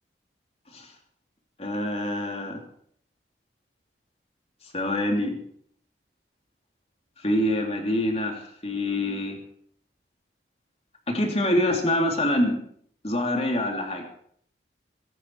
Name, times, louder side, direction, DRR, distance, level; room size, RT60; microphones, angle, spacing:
voice 1, 1.6-2.6 4.7-5.4 7.2-9.4 11.1-12.6 13.0-14.0, left 1 dB, 35° left, 2 dB, 3.0 m, -25 dB
23.0 x 11.0 x 4.7 m, 0.64 s
head